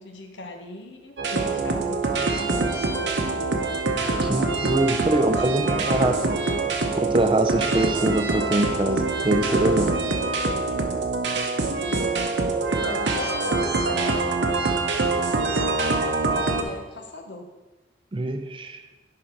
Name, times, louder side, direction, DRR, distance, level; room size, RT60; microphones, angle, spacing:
voice 1, 0.0-2.7 4.8-6.0 11.6-12.1 12.8-14.6 15.5-17.5, left 2 dB, 80° left, 4 dB, 1.0 m, -38 dB
sound 1, 1.2-16.6, right 3 dB, 70° right, 0.8 m, -25 dB
voice 2, 4.2-6.2 7.0-10.0 18.1-18.8, right 1 dB, 30° right, 8 dB, 0.4 m, -23 dB
10.5 x 3.9 x 4.5 m, 1.2 s
head